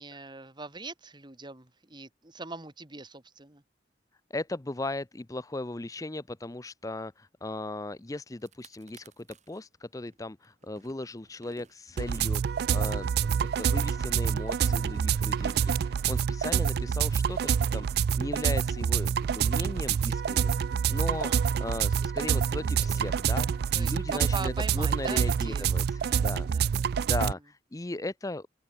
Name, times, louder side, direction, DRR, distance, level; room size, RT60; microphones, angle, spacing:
voice 1, 0.0-3.6 14.6-15.0 15.4-15.7 21.1-21.5 23.7-27.1, right 3 dB, 25° right, 2.2 m, -42 dB
voice 2, 4.3-13.3 13.6-21.3 21.6-28.5, left 2 dB, 20° left, 0.6 m, -37 dB
sound 1, 8.0-8.1 8.3-9.6 10.1-16.8, right 3 dB, 40° right, 7.3 m, -57 dB
sound 2, 12.0-27.3, right 7 dB, 55° right, 0.3 m, -27 dB
open air
head